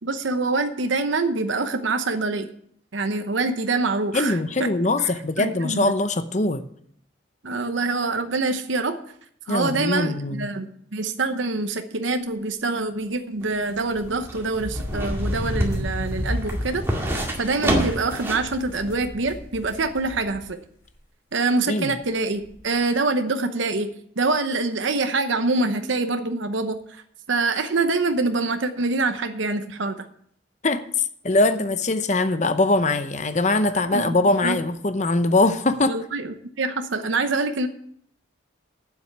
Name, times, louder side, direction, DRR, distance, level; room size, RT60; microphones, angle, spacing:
voice 1, 0.0-2.5 2.9-4.7 5.4-5.9 7.4-9.0 9.5-16.8 17.4-20.6 21.3-23.9 24.2-27.0 27.3-30.1 33.9-34.2 34.4-34.6 35.9-37.7, right 3 dB, 75° right, 0.9 m, -25 dB
voice 2, 4.1-6.7 9.5-10.5 21.7-21.9 30.6-30.8 31.2-35.9, left 2 dB, 35° left, 0.7 m, -22 dB
sound 1, 13.4-18.5 18.9-19.0, right 1 dB, 15° right, 2.0 m, -28 dB
sound 2, 13.7-20.5 20.8-20.9 22.0-22.1 22.4-22.6, left 1 dB, 15° left, 3.6 m, -33 dB
9.0 x 7.8 x 8.0 m
head